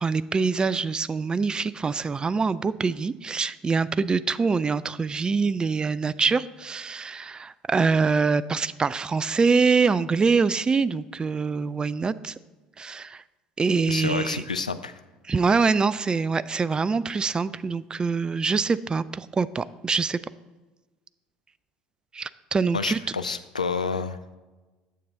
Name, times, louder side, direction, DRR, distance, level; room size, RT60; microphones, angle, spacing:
voice 1, 0.0-12.3 12.8-13.2 13.6-14.4 15.3-20.2 22.1-23.0, right 4 dB, 20° right, 17 dB, 0.3 m, -24 dB
voice 2, 13.9-14.9 22.7-24.2, left 5 dB, 85° left, 10 dB, 0.3 m, -29 dB
9.3 x 7.0 x 3.8 m, 1.2 s
figure-of-eight pair, 60°, 4 cm